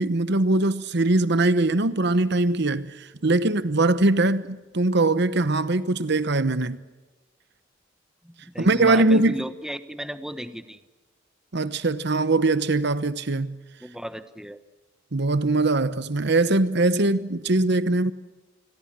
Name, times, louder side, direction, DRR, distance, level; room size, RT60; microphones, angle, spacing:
voice 1, 0.0-6.8 8.6-9.3 11.5-13.6 15.1-18.1, right 2 dB, 60° right, 1.0 m, -22 dB
voice 2, 8.2-10.8 13.8-14.6, equal, 5° right, 1.2 m, -35 dB
28.5 x 22.0 x 7.6 m
head